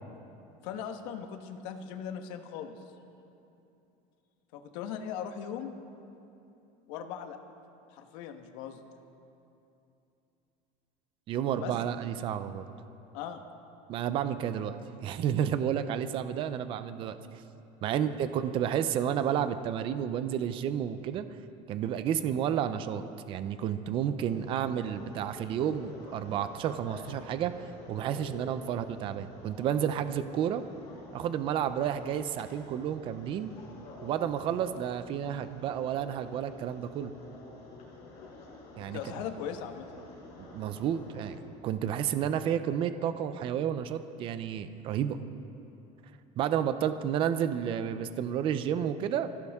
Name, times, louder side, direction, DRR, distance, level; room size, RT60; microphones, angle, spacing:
voice 1, 0.6-2.7 4.5-5.7 6.9-7.4 7.9-8.8 11.6-11.8 13.1-13.4 17.9-18.2 38.9-39.9, left 8 dB, 65° left, 6 dB, 1.3 m, -39 dB
voice 2, 11.3-12.6 13.9-14.8 15.0-17.2 17.8-21.3 21.7-30.6 31.1-33.5 34.0-37.1 38.8-39.0 40.4-45.2 46.4-49.3, right 9 dB, 30° right, 11 dB, 0.5 m, -31 dB
sound 1, 24.2-41.4, left 2 dB, 40° left, 4.3 m, -50 dB
23.0 x 16.0 x 3.6 m, 2.8 s
cardioid pair, 175°, 17 cm